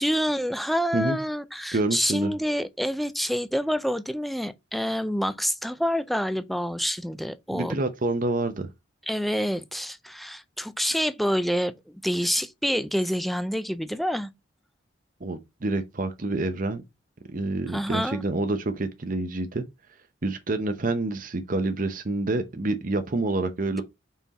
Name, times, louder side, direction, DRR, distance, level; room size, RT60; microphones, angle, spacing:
voice 1, 0.0-7.7 9.1-11.7 12.0-14.3 17.7-18.2, equal, ahead, 0.4 m, -27 dB
voice 2, 1.7-2.4 7.5-8.7 15.2-16.8 17.3-19.6 20.2-23.8, right 2 dB, 45° right, 0.8 m, -27 dB
5.7 x 4.4 x 4.1 m
head